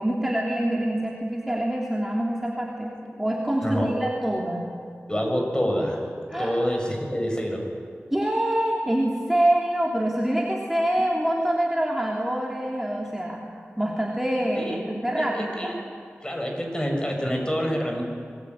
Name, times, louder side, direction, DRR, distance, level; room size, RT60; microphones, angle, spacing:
voice 1, 0.0-4.6 6.3-6.6 8.1-13.5 13.8-15.7, right 1 dB, 5° right, -3 dB, 3.4 m, -25 dB
voice 2, 5.1-6.0 6.4-7.7 14.6-14.8 15.2-15.8 16.2-18.0, equal, 20° left, 2 dB, 6.7 m, -27 dB
25.5 x 22.5 x 9.6 m, 2.3 s
wide cardioid pair, 70°, 5 cm